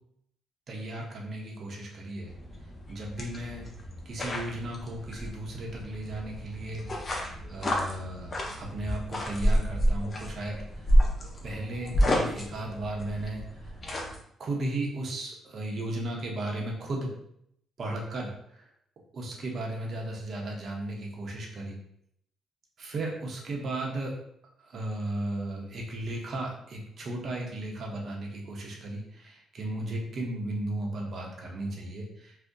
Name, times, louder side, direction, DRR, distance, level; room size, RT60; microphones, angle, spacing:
voice 1, 0.7-2.3 2.9-3.6 4.0-7.1 7.5-11.0 11.4-13.7 14.4-17.1 17.8-18.7 19.1-21.8 22.8-24.2 24.6-32.4, right 1 dB, 55° right, 0 dB, 0.7 m, -35 dB
sound 1, 2.2-14.2, equal, 35° left, 0.6 m, -30 dB
2.6 x 2.1 x 3.6 m, 0.71 s
cardioid pair, 90°, 0 cm